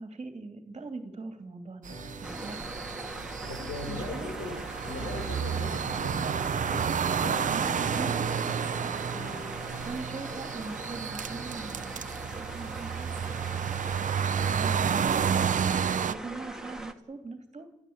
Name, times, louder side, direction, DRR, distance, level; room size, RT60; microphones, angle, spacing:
voice 1, 0.0-2.7 3.9-4.3 8.0-8.2 9.5-13.9 14.5-15.6 16.1-17.7, right 3 dB, 25° right, 6 dB, 2.9 m, -42 dB
sound 1, 1.8-16.1, right 7 dB, 40° right, 0.7 m, -31 dB
sound 2, 1.9-10.2, equal, 25° left, 7.4 m, -44 dB
sound 3, 2.2-16.9, right 1 dB, 5° right, 2.1 m, -41 dB
voice 2, 3.5-8.9, left 3 dB, 65° left, 2 dB, 5.1 m, -40 dB
29.5 x 12.5 x 8.8 m, 1.1 s
cardioid pair, 90°, 20 cm